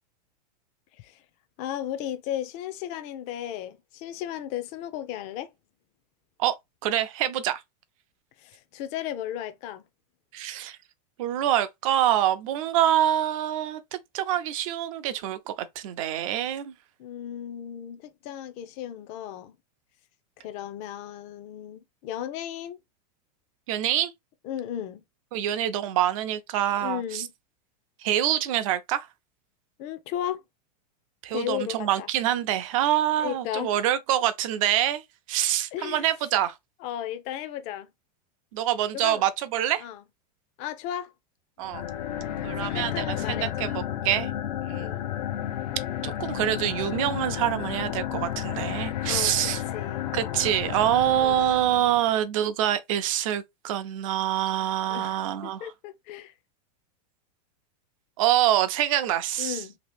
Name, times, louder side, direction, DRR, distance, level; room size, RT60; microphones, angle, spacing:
voice 1, 0.9-1.2 1.6-5.5 8.4-9.8 17.0-19.6 20.4-22.8 24.4-25.0 26.8-27.3 29.8-30.4 31.3-32.1 33.2-33.7 35.7-36.1 36.8-37.9 38.9-39.2 39.8-40.0 40.6-41.1 42.6-43.7 44.7-45.1 49.0-50.1 51.2-51.5 54.9-56.3 59.4-59.8, left 11 dB, 35° left, 0.5 m, -35 dB
voice 2, 6.8-7.6 10.3-10.8 11.2-16.7 23.7-24.1 25.3-27.2 28.0-29.1 31.2-35.0 35.3-36.5 38.5-39.8 41.6-41.8 42.4-43.7 44.0-44.3 44.6-45.0 46.0-49.6 50.1-55.6 58.2-59.6, right 12 dB, 55° right, 0.6 m, -26 dB
sound 1, 41.6-52.1, left 11 dB, 85° left, 0.6 m, -32 dB
2.9 x 2.8 x 3.3 m
supercardioid pair, 160°, 21 cm